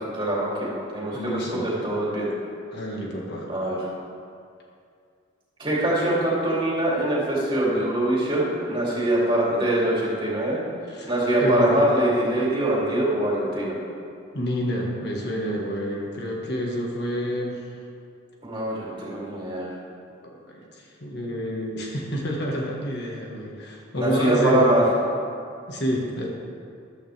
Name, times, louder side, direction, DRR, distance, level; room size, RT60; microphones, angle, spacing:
voice 1, 0.0-2.3 3.5-3.8 5.6-10.6 11.1-13.8 18.4-19.7 24.0-24.9, right 1 dB, 25° right, -6 dB, 3.0 m, -23 dB
voice 2, 1.1-1.7 2.7-3.5 10.9-11.1 11.4-11.8 14.3-17.6 20.3-24.7 25.7-26.3, equal, 55° left, -1 dB, 1.6 m, -28 dB
14.5 x 11.5 x 3.4 m, 2.4 s
head